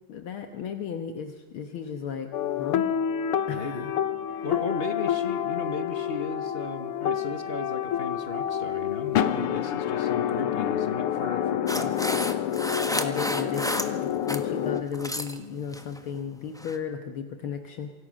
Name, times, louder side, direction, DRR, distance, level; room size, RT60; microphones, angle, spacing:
voice 1, 0.1-2.9 3.5-3.9 4.3-4.5 12.9-17.9, left 7 dB, 70° left, 6 dB, 2.1 m, -35 dB
sound 1, 2.3-14.8, left 10 dB, 90° left, 1.9 m, -28 dB
voice 2, 3.5-3.9 4.4-12.0, left 3 dB, 40° left, 8 dB, 0.9 m, -35 dB
sound 2, 11.7-14.4 14.8-15.4 15.7-16.0 16.6-16.8, equal, ahead, 0.9 m, -31 dB
28.0 x 25.0 x 6.3 m, 1.2 s
omnidirectional pair, 2.4 m